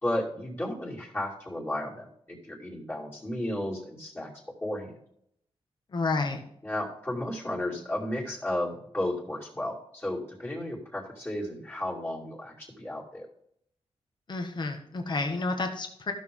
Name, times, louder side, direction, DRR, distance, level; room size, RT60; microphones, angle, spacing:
voice 1, 0.0-5.0 6.6-13.3, left 1 dB, 20° left, -5 dB, 2.6 m, -33 dB
voice 2, 5.9-6.5 14.3-16.1, left 3 dB, 45° left, 4 dB, 1.4 m, -30 dB
13.5 x 6.3 x 3.7 m, 0.71 s
wide cardioid pair, 125°, 11 cm